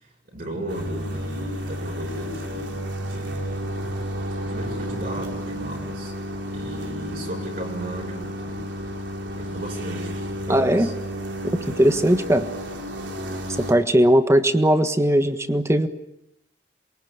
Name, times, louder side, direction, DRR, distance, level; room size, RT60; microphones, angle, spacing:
voice 1, 0.0-3.9 4.4-6.1 6.5-8.7 9.4-10.9 11.5-11.9, right 1 dB, 50° right, -1 dB, 7.0 m, -36 dB
sound 1, 0.7-13.7, equal, 80° right, 3.9 m, -32 dB
voice 2, 10.5-10.9 11.8-12.5 13.6-15.9, equal, 15° right, 9 dB, 1.5 m, -18 dB
27.5 x 23.0 x 9.0 m, 0.87 s
head